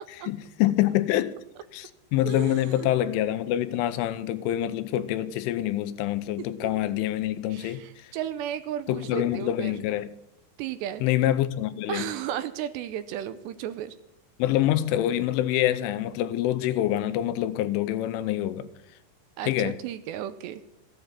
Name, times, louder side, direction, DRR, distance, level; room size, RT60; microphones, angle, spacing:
voice 1, 0.2-1.4 1.7-7.8 8.9-10.1 11.0-12.0 14.4-18.7 19.4-19.8, left 13 dB, 85° left, 3.3 m, -26 dB
voice 2, 2.2-2.9 6.4-6.7 7.5-9.8 10.6-11.1 11.9-13.9 19.4-20.6, right 11 dB, 80° right, 2.6 m, -34 dB
15.5 x 9.3 x 8.2 m
omnidirectional pair, 5.6 m